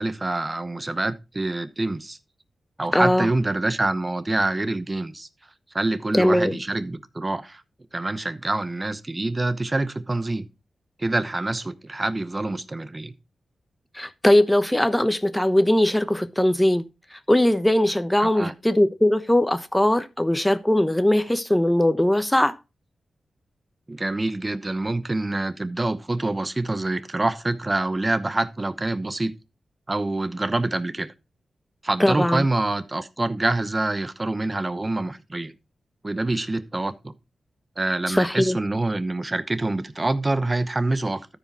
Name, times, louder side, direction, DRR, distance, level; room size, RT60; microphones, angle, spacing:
voice 1, 0.0-2.2 2.8-5.3 5.7-7.6 7.9-10.4 11.0-13.1 18.2-18.5 23.9-29.3 29.9-31.1 31.8-35.5 36.0-37.1 37.8-41.3, right 2 dB, 25° right, 0.9 m, -26 dB
voice 2, 2.9-3.3 6.1-6.6 13.9-16.8 17.3-22.5 32.0-32.4 38.1-38.6, left 1 dB, 10° left, 1.0 m, -20 dB
13.0 x 5.0 x 4.2 m
cardioid pair, 60°, 0 cm